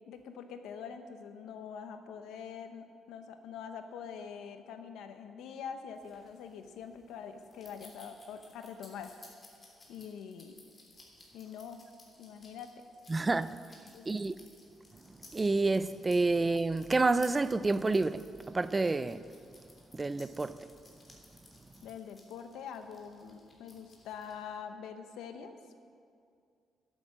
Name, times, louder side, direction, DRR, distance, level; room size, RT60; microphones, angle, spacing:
voice 1, 0.1-9.2 9.9-10.6 11.3-11.9 12.2-12.7 13.9-14.1 21.8-25.5, left 7 dB, 85° left, 0.9 m, -44 dB
sound 1, 6.0-24.6, left 2 dB, 30° left, 3.2 m, -59 dB
voice 2, 13.1-13.6 14.1-14.3 15.3-18.3 18.5-19.2 19.9-20.6, right 3 dB, 25° right, 0.4 m, -28 dB
11.5 x 8.7 x 7.5 m
cardioid pair, 90°, 0 cm